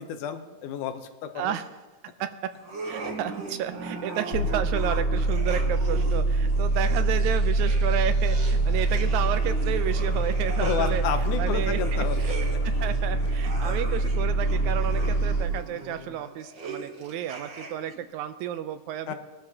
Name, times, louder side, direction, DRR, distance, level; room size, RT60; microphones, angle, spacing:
voice 1, 0.0-1.6 10.6-12.2 19.1-19.2, left 8 dB, 80° left, 8 dB, 2.3 m, -31 dB
voice 2, 1.4-1.7 2.2-2.5 2.8-11.0 11.4-12.4 12.6-19.1, right 10 dB, 80° right, 10 dB, 1.9 m, -32 dB
sound 1, 2.6-18.0, right 3 dB, 50° right, 1.6 m, -40 dB
sound 2, 4.3-15.4, right 2 dB, 55° left, 3.5 m, -24 dB
21.0 x 12.5 x 2.8 m, 1.2 s
omnidirectional pair, 3.5 m